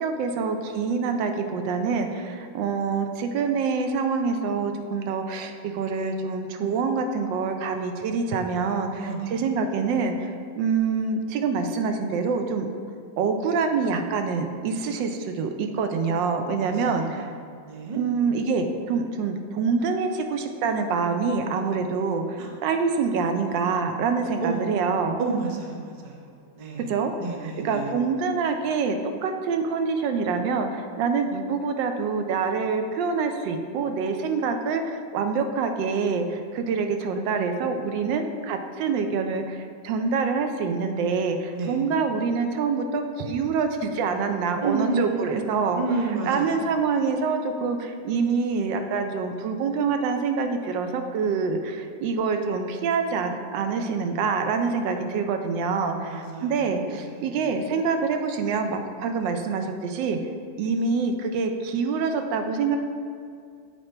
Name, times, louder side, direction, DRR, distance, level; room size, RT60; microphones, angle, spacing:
voice 1, 0.0-12.7 13.2-17.3 18.0-25.2 26.9-27.1 27.4-45.8 46.2-60.2 60.6-62.8, right 5 dB, 90° right, 6 dB, 1.3 m, -26 dB
voice 2, 9.0-9.4 16.5-17.3 17.6-18.0 22.4-22.5 24.4-24.8 25.2-26.3 26.5-26.9 27.2-27.9 41.5-41.8 44.6-46.6 55.9-57.4, right 4 dB, 45° right, 0 dB, 0.5 m, -31 dB
7.8 x 4.5 x 4.4 m, 2.3 s
omnidirectional pair, 1.9 m